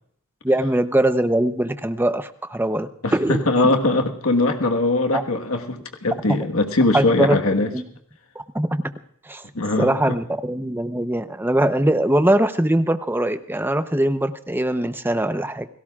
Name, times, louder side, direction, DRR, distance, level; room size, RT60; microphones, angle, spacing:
voice 1, 0.4-3.4 5.1-5.2 6.9-7.4 7.7-7.8 8.5-8.8 9.3-9.4 9.8-15.7, right 1 dB, 10° right, 10 dB, 0.8 m, -21 dB
voice 2, 3.0-7.7 9.5-10.0, left 2 dB, 70° left, 4 dB, 1.5 m, -21 dB
29.0 x 18.0 x 2.4 m, 0.68 s
head